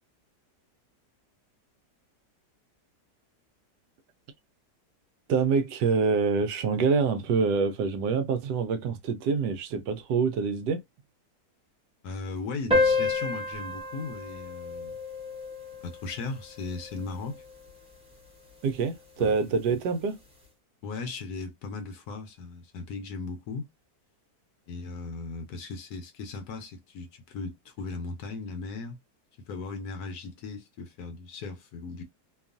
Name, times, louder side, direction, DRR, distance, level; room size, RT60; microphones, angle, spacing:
voice 1, 5.3-10.8 18.6-20.2, right 5 dB, 75° right, 1.1 m, -26 dB
voice 2, 12.0-15.0 15.8-17.4 19.2-19.3 20.8-23.7 24.7-29.0 29.5-32.0, left 3 dB, 70° left, 1.1 m, -37 dB
sound 1, 12.7-17.7, left 3 dB, 5° right, 0.8 m, -30 dB
2.9 x 2.3 x 2.4 m
omnidirectional pair, 1.9 m